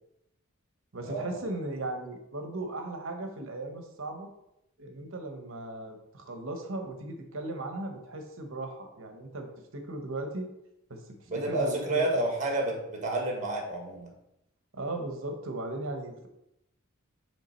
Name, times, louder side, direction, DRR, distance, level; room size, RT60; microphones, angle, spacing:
voice 1, 0.9-4.3 4.8-10.5 10.9-12.0 14.7-16.3, right 2 dB, 65° right, 5 dB, 1.0 m, -37 dB
voice 2, 11.3-14.1, right 2 dB, 35° right, 0 dB, 1.4 m, -30 dB
7.1 x 3.3 x 4.3 m, 0.84 s
head